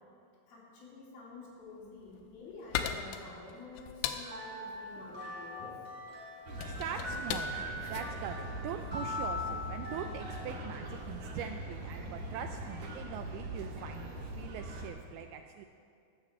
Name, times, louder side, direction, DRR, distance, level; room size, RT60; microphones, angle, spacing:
voice 1, 0.5-5.8, left 3 dB, 65° left, -5 dB, 4.3 m, -49 dB
sound 1, 1.9-9.3, left 9 dB, 85° left, 2.6 m, -40 dB
sound 2, 4.2-10.4, left 1 dB, 10° right, 2.5 m, -41 dB
sound 3, 6.5-14.9, equal, 60° right, 2.4 m, -42 dB
voice 2, 6.6-7.6 7.9-15.7, right 9 dB, 85° right, 6 dB, 2.2 m, -42 dB
13.5 x 6.4 x 7.5 m, 2.4 s
omnidirectional pair, 4.8 m